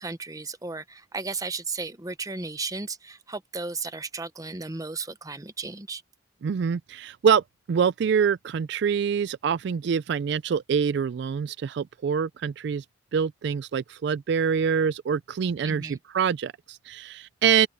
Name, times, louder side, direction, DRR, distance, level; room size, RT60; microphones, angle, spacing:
voice 1, 0.0-6.0 15.6-16.0, right 3 dB, 20° right, 0.8 m, -34 dB
voice 2, 6.4-7.4 7.7-12.8 13.1-17.7, right 7 dB, 60° right, 0.3 m, -25 dB
open air
head